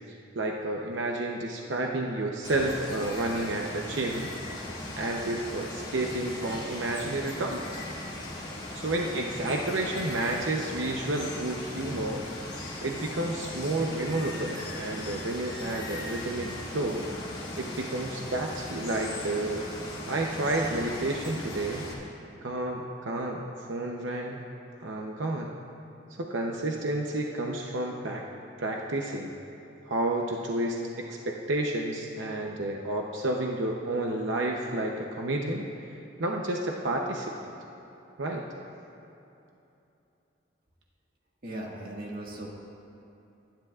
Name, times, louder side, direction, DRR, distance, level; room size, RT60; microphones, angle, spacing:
voice 1, 0.1-4.3 5.0-7.8 8.7-12.2 12.8-16.5 16.7-17.0 17.6-19.6 20.1-21.8 22.4-24.4 24.8-25.5 26.2-28.2 28.6-29.3 29.9-35.7 36.2-37.5 38.2-38.4, right 2 dB, 85° right, 0 dB, 0.8 m, -30 dB
Water, 2.4-21.9, left 1 dB, 25° left, 2.2 m, -38 dB
voice 2, 41.4-42.5, right 1 dB, 50° right, -2 dB, 1.8 m, -38 dB
24.5 x 10.5 x 2.4 m, 2.8 s
head